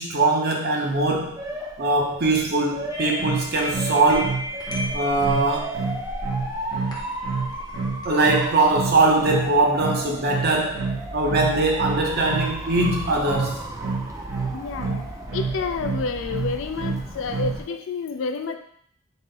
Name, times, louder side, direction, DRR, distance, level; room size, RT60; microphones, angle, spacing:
voice 1, 0.0-1.4 1.8-4.4 4.9-5.8 8.0-13.7, right 2 dB, 55° right, 0 dB, 0.7 m, -21 dB
Motor vehicle (road) / Siren, 0.9-17.6, right 1 dB, 15° right, 0.4 m, -35 dB
sound 1, 2.9-9.5, left 1 dB, 20° left, 0.7 m, -35 dB
sound 2, 3.2-17.6, right 4 dB, 90° right, 0.7 m, -29 dB
voice 2, 14.5-15.0 15.3-18.6, left 4 dB, 70° left, 7 dB, 0.4 m, -29 dB
4.0 x 2.1 x 3.7 m, 0.63 s
head